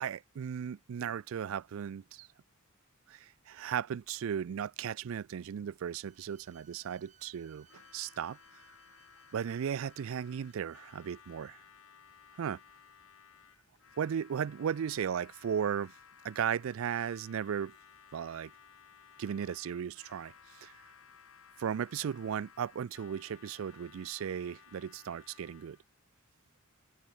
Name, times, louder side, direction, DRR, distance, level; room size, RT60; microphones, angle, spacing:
voice 1, 0.0-2.3 3.1-7.7 7.9-8.4 9.3-11.6 12.4-12.6 14.0-15.9 16.2-17.8 18.1-18.5 19.2-20.7 21.6-25.8, right 8 dB, 70° right, 0.3 m, -36 dB
Bowed string instrument, 5.9-11.4, right 8 dB, 35° right, 1.7 m, -66 dB
Harmonica, 7.6-25.9, left 7 dB, 75° left, 1.3 m, -58 dB
open air
head